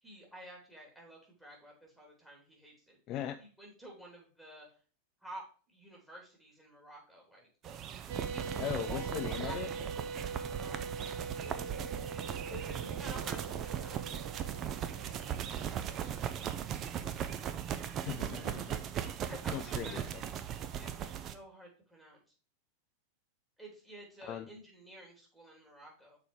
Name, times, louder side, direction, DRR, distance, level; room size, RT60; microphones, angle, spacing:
voice 1, 0.0-3.0 3.4-4.7 5.2-5.4 5.7-7.5 8.3-9.6 10.6-11.0 12.5-14.2 14.9-16.3 18.9-20.0 20.8-22.2 23.6-26.2, right 1 dB, 5° right, -1 dB, 3.4 m, -51 dB
voice 2, 3.1-3.4 8.6-9.7 18.0-18.8 19.5-20.2 24.2-24.5, left 11 dB, 35° left, 10 dB, 0.4 m, -39 dB
sound 1, 7.6-21.3, right 9 dB, 30° right, 0.6 m, -38 dB
sound 2, 8.1-16.8, right 4 dB, 45° right, 1.0 m, -44 dB
6.7 x 4.5 x 4.8 m, 0.39 s
figure-of-eight pair, 90°, 0 cm